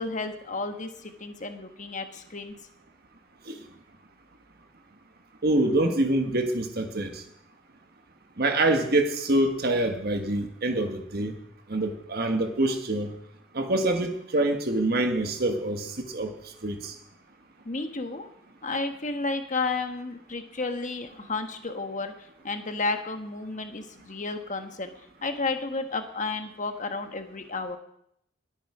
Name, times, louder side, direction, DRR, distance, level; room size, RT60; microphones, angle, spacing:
voice 1, 0.0-2.5 17.6-18.3 18.6-22.1 22.4-24.9 25.2-27.8, left 3 dB, 35° left, 7 dB, 1.3 m, -32 dB
voice 2, 5.4-7.2 8.4-11.3 11.7-13.1 13.5-16.3 16.6-16.9, right 1 dB, 50° right, 6 dB, 1.5 m, -25 dB
20.5 x 8.9 x 4.9 m, 0.75 s
head